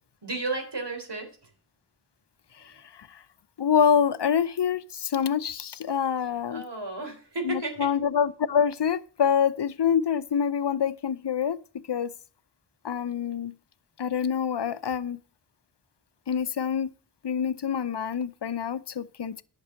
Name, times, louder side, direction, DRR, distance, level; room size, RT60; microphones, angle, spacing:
voice 1, 0.2-1.3 6.5-7.9, right 2 dB, 80° right, 3.8 m, -33 dB
voice 2, 2.6-3.2 3.6-6.6 7.4-11.6 11.9-12.1 12.8-13.5 14.0-15.2 16.3-16.9 17.2-19.4, left 7 dB, 80° left, 0.7 m, -26 dB
11.0 x 6.1 x 7.5 m
wide cardioid pair, 55°, 41 cm